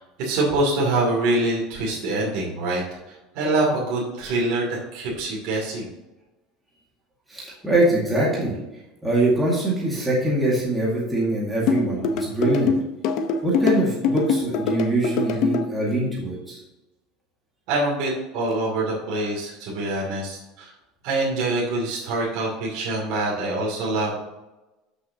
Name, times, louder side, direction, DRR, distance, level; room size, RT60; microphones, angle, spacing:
voice 1, 0.0-2.8 3.1-5.9 17.7-20.7 21.0-24.2, right 2 dB, 50° right, -4 dB, 2.6 m, -25 dB
voice 2, 7.3-8.5 9.0-12.7 13.4-16.6, right 1 dB, 5° right, -6 dB, 2.0 m, -23 dB
sound 1, 11.7-15.6, left 5 dB, 50° left, 0.9 m, -23 dB
13.0 x 6.5 x 2.9 m, 1.0 s
cardioid pair, 175°, 0 cm